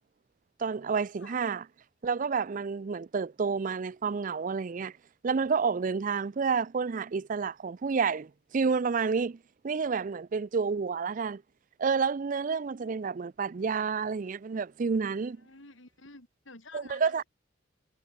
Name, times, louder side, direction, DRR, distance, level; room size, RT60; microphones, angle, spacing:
voice 1, 0.6-1.6 2.0-4.9 5.2-9.4 9.6-11.4 11.8-15.4 16.7-17.2, right 5 dB, 45° right, 0.4 m, -29 dB
voice 2, 15.4-17.3, left 3 dB, 90° left, 7.0 m, -51 dB
head